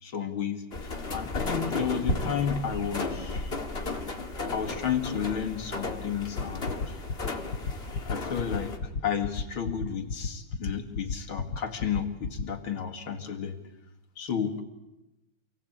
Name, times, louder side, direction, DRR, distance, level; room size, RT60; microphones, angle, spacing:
voice 1, 0.0-3.5 4.5-7.0 8.1-13.6 14.2-14.6, left 7 dB, 65° left, 4 dB, 2.7 m, -32 dB
sound 1, 0.7-8.8, left 2 dB, 30° left, 2.1 m, -34 dB
sound 2, 6.4-12.4, left 5 dB, 50° left, 1.6 m, -31 dB
28.0 x 17.5 x 8.6 m, 0.98 s
omnidirectional pair, 2.4 m